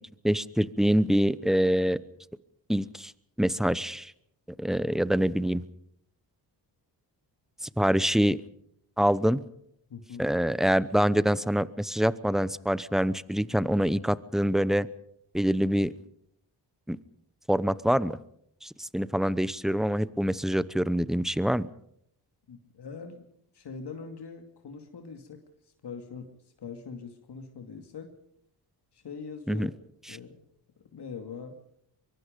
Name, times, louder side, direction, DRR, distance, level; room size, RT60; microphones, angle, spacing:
voice 1, 0.2-2.0 2.7-3.1 3.4-4.1 4.6-5.6 7.8-8.4 9.0-9.4 10.2-14.9 15.3-15.9 16.9-17.0 17.5-18.2 18.6-21.7 29.5-29.7, equal, ahead, 17 dB, 0.8 m, -25 dB
voice 2, 9.9-10.2 22.5-23.3 23.5-25.4 25.8-26.3 26.6-28.1 28.9-29.7 30.1-30.4 30.8-31.6, left 5 dB, 65° left, 4 dB, 2.5 m, -42 dB
24.0 x 22.5 x 5.3 m, 0.72 s
cardioid pair, 80°, 43 cm